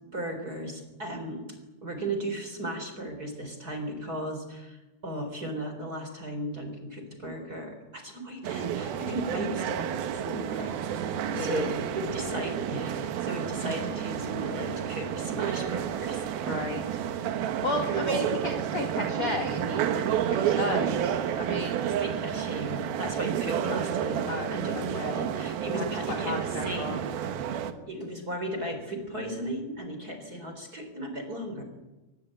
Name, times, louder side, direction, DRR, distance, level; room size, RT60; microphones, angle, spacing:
voice 1, 0.1-1.4 1.8-10.7 11.0-16.3 20.4-20.7 21.8-27.0 27.9-31.6, right 1 dB, 20° right, 5 dB, 3.8 m, -36 dB
sound 1, 8.4-27.7, right 9 dB, 65° right, 2.5 m, -30 dB
voice 2, 11.3-11.8 16.5-17.0 17.6-21.9 24.3-25.3 25.7-27.0, left 3 dB, 45° left, 3 dB, 2.4 m, -34 dB
24.0 x 20.0 x 8.9 m, 1.1 s
omnidirectional pair, 5.7 m